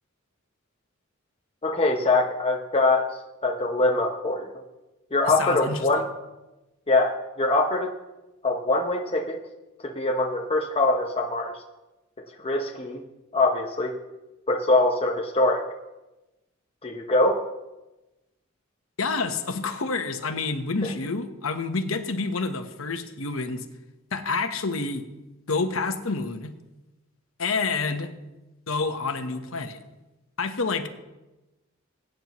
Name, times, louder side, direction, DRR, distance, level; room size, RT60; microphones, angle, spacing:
voice 1, 1.6-4.5 5.1-6.1 6.9-7.9 8.4-9.4 9.8-11.5 12.4-13.0 13.3-13.9 14.5-15.6 16.8-17.4, left 2 dB, 30° left, 0 dB, 0.8 m, -23 dB
voice 2, 5.3-5.9 19.0-23.6 24.1-25.0 25.5-26.5 27.4-28.1 28.7-29.8 30.4-30.9, left 4 dB, 80° left, 7 dB, 1.1 m, -28 dB
21.0 x 9.1 x 3.1 m, 1.0 s
head